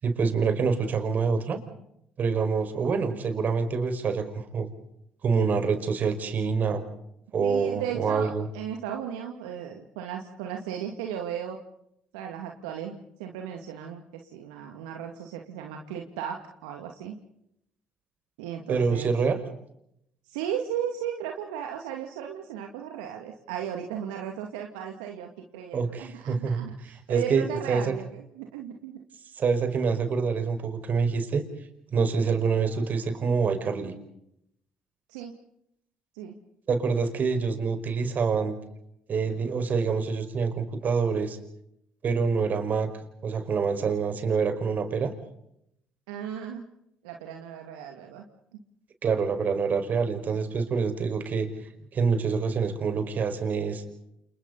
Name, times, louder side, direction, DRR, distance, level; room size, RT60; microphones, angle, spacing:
voice 1, 0.0-1.6 2.2-4.7 5.2-6.8 7.3-8.4 18.7-19.4 25.7-26.6 27.1-27.9 29.4-31.4 31.9-33.9 36.7-38.5 39.1-41.4 42.0-42.9 43.2-45.1 49.0-51.5 51.9-53.8, right 5 dB, 50° right, 7 dB, 5.2 m, -26 dB
voice 2, 7.4-11.6 12.1-17.2 18.4-19.1 20.2-29.0 35.1-35.4 36.1-36.4 46.1-46.6 47.0-48.3 48.5-48.6 50.3-50.4, right 9 dB, 80° right, 3 dB, 2.4 m, -36 dB
30.0 x 29.0 x 4.1 m, 0.76 s
hypercardioid pair, 50°, 4 cm